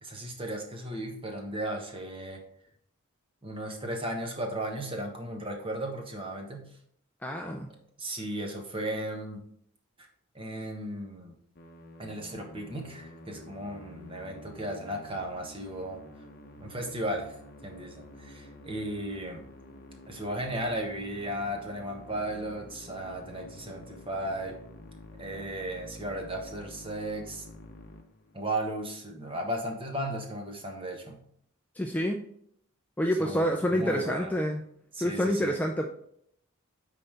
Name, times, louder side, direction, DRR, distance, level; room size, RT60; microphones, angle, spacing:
voice 1, 0.0-2.4 3.4-6.7 8.0-9.4 10.3-11.3 12.0-16.0 16.6-17.4 17.6-19.4 20.1-24.6 25.2-27.5 28.3-31.2 33.2-34.3 34.9-35.5, right 1 dB, 25° right, 2 dB, 1.2 m, -35 dB
voice 2, 7.2-7.7 31.7-32.2 33.0-34.6 35.0-35.9, equal, 5° left, 1 dB, 0.4 m, -28 dB
Musical instrument, 11.6-28.7, left 1 dB, 40° left, 0.9 m, -49 dB
9.4 x 4.1 x 3.4 m, 0.67 s
head